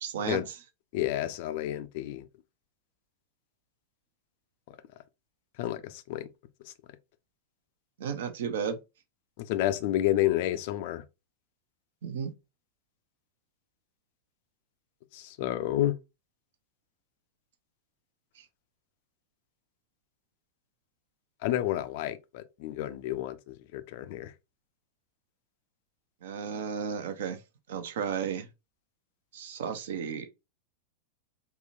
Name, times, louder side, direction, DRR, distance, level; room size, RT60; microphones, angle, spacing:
voice 1, 0.0-0.6 8.0-8.8 12.0-12.3 18.4-18.5 26.2-27.4 27.7-28.5 29.3-30.3, right 7 dB, 60° right, 0.5 m, -33 dB
voice 2, 0.9-2.2 5.6-6.3 9.4-11.0 15.1-15.9 21.4-24.3, left 13 dB, 50° left, 0.3 m, -30 dB
3.7 x 2.2 x 2.5 m
figure-of-eight pair, 90°, 0 cm